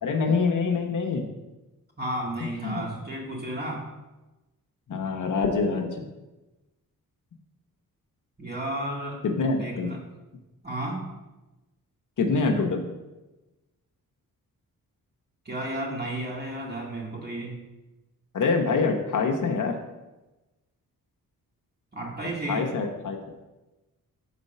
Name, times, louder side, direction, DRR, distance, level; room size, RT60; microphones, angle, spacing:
voice 1, 0.0-1.2 2.6-2.8 4.9-6.0 9.2-9.9 12.2-12.8 18.3-19.7 22.5-23.2, left 4 dB, 60° left, 2 dB, 0.9 m, -25 dB
voice 2, 2.0-3.9 8.4-9.2 9.5-10.0 10.6-11.1 15.5-17.6 21.9-22.7, right 1 dB, 30° right, -2 dB, 1.9 m, -33 dB
5.2 x 4.0 x 5.4 m, 1.1 s
cardioid pair, 60°, 35 cm